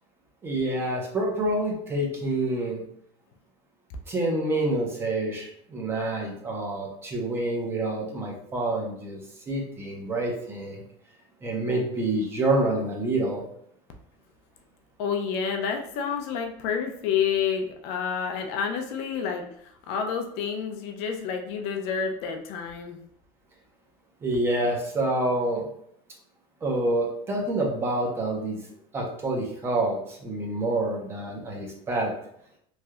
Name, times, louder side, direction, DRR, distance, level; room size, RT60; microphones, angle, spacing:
voice 1, 0.4-2.8 4.1-9.2 9.5-10.8 11.4-13.4 24.2-25.7 26.6-28.6 28.9-32.1, right 2 dB, 15° right, 0 dB, 0.5 m, -27 dB
voice 2, 15.0-23.0, left 7 dB, 50° left, 4 dB, 0.4 m, -29 dB
3.1 x 2.6 x 2.3 m, 0.69 s
cardioid pair, 165°, 14 cm